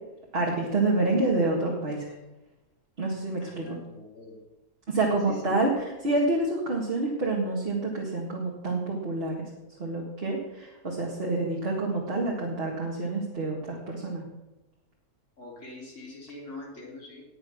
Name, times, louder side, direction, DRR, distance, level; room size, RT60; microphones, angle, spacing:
voice 1, 0.3-2.2 3.0-3.8 4.9-9.5 9.8-14.2, right 2 dB, 40° right, -2 dB, 2.1 m, -28 dB
voice 2, 3.4-4.4 5.3-5.5 15.4-17.2, left 2 dB, 50° left, -3 dB, 3.8 m, -43 dB
19.0 x 6.6 x 6.4 m, 1.0 s
omnidirectional pair, 1.7 m